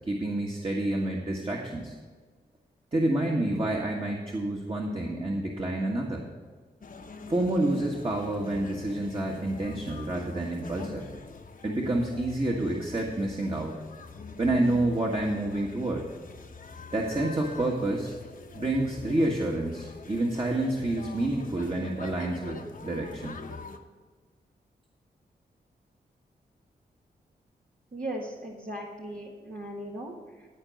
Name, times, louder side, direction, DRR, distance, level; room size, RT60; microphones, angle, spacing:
voice 1, 0.1-1.9 2.9-6.2 7.3-11.0 11.6-13.8 14.4-16.0 16.9-18.1 18.5-23.4, right 1 dB, 30° right, -1 dB, 1.6 m, -28 dB
sound 1, 6.8-23.8, left 4 dB, 50° left, 1.0 m, -44 dB
voice 2, 27.9-30.5, right 1 dB, 50° right, -3 dB, 1.5 m, -38 dB
13.5 x 4.6 x 6.4 m, 1.5 s
cardioid pair, 45°, 18 cm